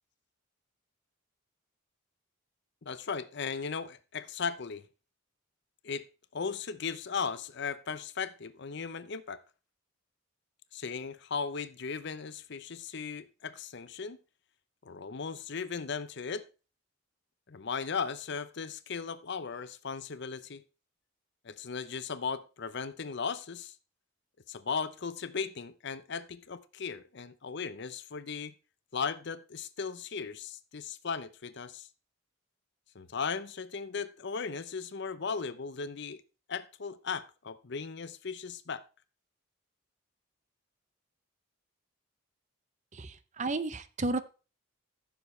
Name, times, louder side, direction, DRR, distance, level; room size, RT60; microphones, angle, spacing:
voice 1, 2.8-4.8 5.8-6.1 6.3-9.4 10.7-14.2 14.8-16.5 17.5-20.6 21.4-23.7 24.5-28.5 28.9-31.9 32.9-36.2 36.5-38.8, left 5 dB, 60° left, 0.7 m, -37 dB
voice 2, 42.9-44.2, right 2 dB, 35° right, 0.7 m, -33 dB
14.5 x 7.1 x 3.2 m
head